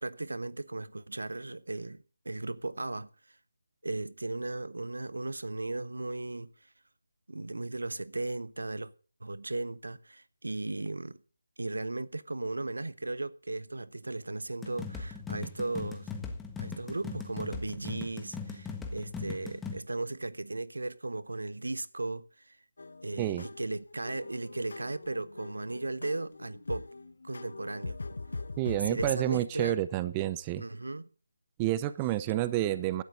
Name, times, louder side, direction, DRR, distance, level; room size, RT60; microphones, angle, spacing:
voice 1, 0.0-3.1 3.8-6.5 7.3-8.9 9.2-11.2 11.6-16.1 16.6-22.6 23.0-26.9 27.2-28.2 28.8-29.8 30.6-31.1, right 2 dB, 80° right, 1.1 m, -36 dB
sound 1, 14.6-19.8, left 4 dB, 5° left, 1.5 m, -39 dB
sound 2, 22.8-29.1, left 3 dB, 65° left, 1.3 m, -42 dB
voice 2, 28.6-30.6 31.6-33.0, right 14 dB, 20° right, 0.6 m, -29 dB
16.5 x 12.0 x 3.9 m
figure-of-eight pair, 160°, 0 cm